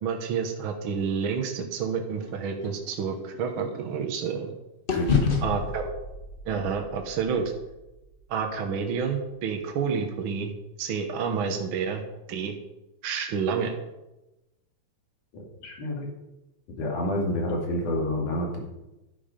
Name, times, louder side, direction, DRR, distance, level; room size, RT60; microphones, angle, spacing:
voice 1, 0.0-4.5 5.4-5.9 6.4-7.5 8.3-10.5 10.8-12.0 12.3-12.5 13.0-13.8, right 6 dB, 55° right, 3 dB, 1.5 m, -29 dB
sound 1, 2.2-4.5 4.9-9.1, left 5 dB, 55° left, 0.6 m, -31 dB
voice 2, 4.9-5.4 15.3-16.1 16.8-18.6, left 1 dB, 80° left, 0 dB, 3.9 m, -29 dB
12.5 x 9.3 x 5.2 m, 0.98 s
omnidirectional pair, 3.5 m